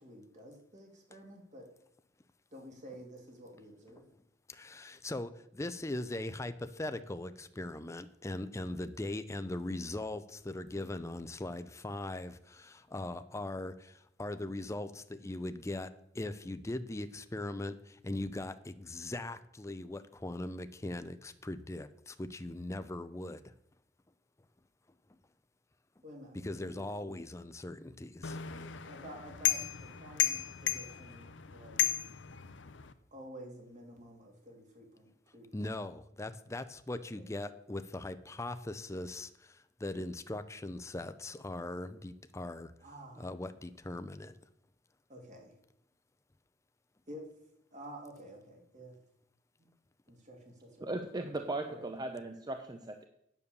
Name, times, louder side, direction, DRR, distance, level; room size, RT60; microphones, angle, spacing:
voice 1, 0.0-1.7 2.5-4.0 26.0-26.9 28.8-31.9 33.1-35.1 35.3-35.5 37.1-37.2 42.8-43.3 45.1-45.5 47.1-47.2 47.7-48.9 50.1-51.0 51.3-51.9, equal, 40° right, 1 dB, 2.6 m, -50 dB
voice 2, 4.5-23.4 26.4-28.7 35.5-42.7 43.2-44.4, left 2 dB, 15° left, 11 dB, 0.5 m, -40 dB
sound 1, 28.2-32.9, left 11 dB, 90° left, 0.7 m, -34 dB
voice 3, 50.8-53.1, right 2 dB, 20° right, 6 dB, 0.6 m, -38 dB
9.4 x 6.9 x 6.9 m, 0.74 s
head